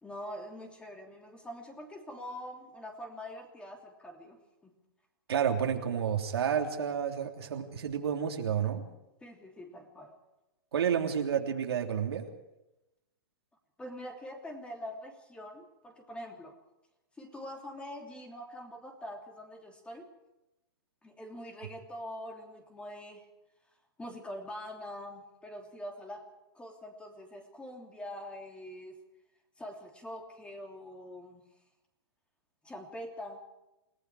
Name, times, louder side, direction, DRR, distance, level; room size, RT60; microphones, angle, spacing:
voice 1, 0.0-4.7 9.2-10.1 13.8-16.5 17.2-20.1 21.0-23.2 24.0-29.0 29.6-31.4 32.6-33.4, equal, 10° left, 3 dB, 3.0 m, -44 dB
voice 2, 5.3-8.8 10.7-12.3, right 8 dB, 85° right, 2 dB, 3.3 m, -30 dB
29.0 x 18.5 x 4.9 m, 0.95 s
hypercardioid pair, 140°, 13 cm